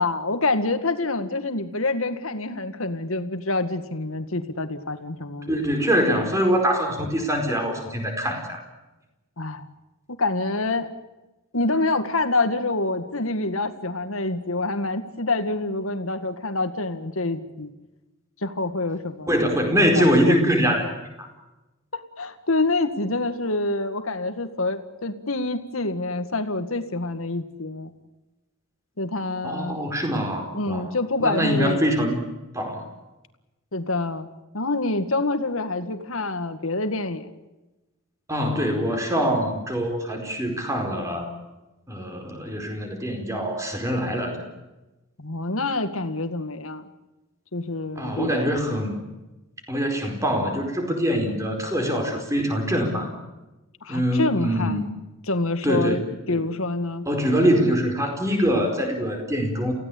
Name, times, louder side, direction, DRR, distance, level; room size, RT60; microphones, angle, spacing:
voice 1, 0.0-5.6 9.4-9.7 10.2-10.9 11.5-17.7 18.4-19.3 20.0-20.4 21.9-27.9 29.0-29.8 30.5-31.8 33.7-34.3 34.5-37.3 45.2-46.8 47.5-48.3 53.8-54.8 55.3-56.0 56.3-57.1, left 2 dB, 75° left, 9 dB, 2.0 m, -26 dB
voice 2, 5.4-8.6 19.3-20.9 21.2-21.3 29.4-30.9 31.2-32.2 32.5-32.9 38.3-41.3 41.9-44.4 48.0-49.0 49.7-53.1 53.9-54.9 55.6-56.0 56.3-56.4 57.1-59.7, equal, 15° right, 3 dB, 4.7 m, -23 dB
28.5 x 16.5 x 8.6 m, 1.0 s
head